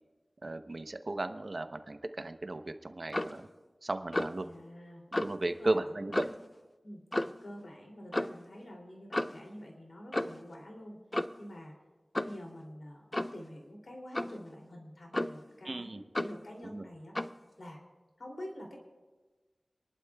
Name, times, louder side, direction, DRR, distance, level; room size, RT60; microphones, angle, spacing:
voice 1, 0.4-3.5 3.8-4.5 5.2-6.3 15.6-16.0 16.6-16.9, right 2 dB, 55° right, 8 dB, 0.8 m, -35 dB
Clock, 3.1-3.4 4.1-4.4 5.1-5.4 6.1-6.5 7.1-7.4 8.1-8.4 9.1-9.4 10.1-10.5 11.1-11.5 12.1-12.4 13.1-13.4 14.1-14.4 15.1-15.5 16.1-16.4 17.1-17.4, left 1 dB, 30° left, 0.4 m, -33 dB
voice 2, 4.4-5.0 5.6-6.4 6.8-7.0 7.4-11.0 11.4-11.7 12.2-17.1 17.6-17.8 18.2-18.8, equal, 85° left, 0 dB, 2.8 m, -47 dB
27.0 x 11.5 x 2.3 m, 1.2 s
wide cardioid pair, 55°, 0 cm